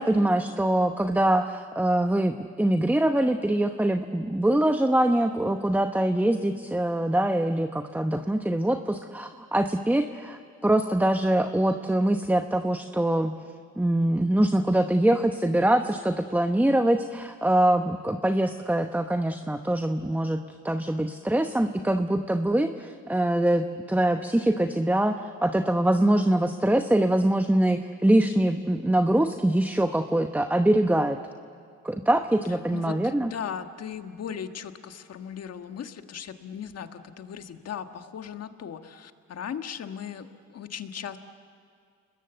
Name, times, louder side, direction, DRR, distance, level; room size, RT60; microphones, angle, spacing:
voice 1, 0.0-13.3 13.8-20.4 20.6-31.2 31.8-33.3, right 1 dB, 5° right, 7 dB, 1.0 m, -24 dB
voice 2, 32.7-41.2, left 8 dB, 55° left, 8 dB, 1.6 m, -37 dB
30.0 x 21.0 x 8.1 m, 2.3 s
cardioid pair, 90°, 30 cm